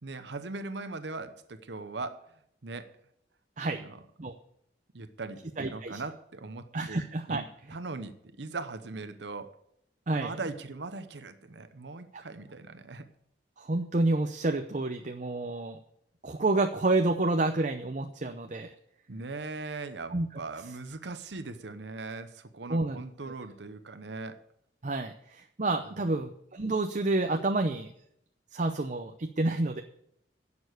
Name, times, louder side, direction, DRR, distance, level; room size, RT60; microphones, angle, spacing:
voice 1, 0.0-2.3 2.6-3.0 3.8-4.0 4.9-7.0 7.3-9.6 10.2-13.1 19.1-24.4 26.0-26.3, right 3 dB, 75° right, 11 dB, 0.9 m, -40 dB
voice 2, 5.6-6.0 6.7-7.4 10.1-10.3 12.1-12.2 13.6-15.8 16.2-18.7 20.1-20.3 22.7-23.0 24.8-27.9 28.5-29.8, right 2 dB, 45° right, 6 dB, 0.7 m, -29 dB
11.0 x 7.0 x 8.1 m, 0.72 s
head